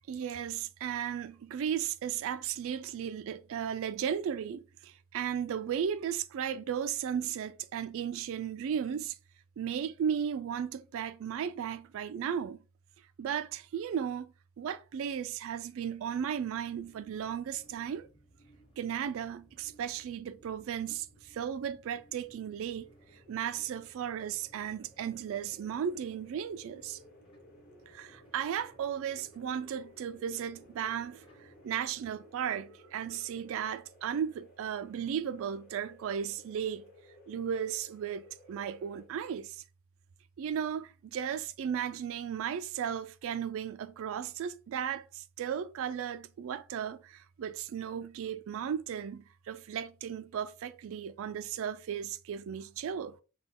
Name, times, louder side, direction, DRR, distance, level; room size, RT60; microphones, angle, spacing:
voice 1, 0.1-9.2 9.6-12.6 13.2-18.1 18.8-27.0 27.9-36.8 37.3-39.6 40.4-53.2, right 8 dB, 65° right, 0.3 m, -35 dB
sound 1, 16.1-31.7, right 1 dB, 25° left, 1.1 m, -63 dB
sound 2, 22.8-39.1, equal, 45° left, 1.3 m, -58 dB
6.0 x 2.2 x 3.5 m
head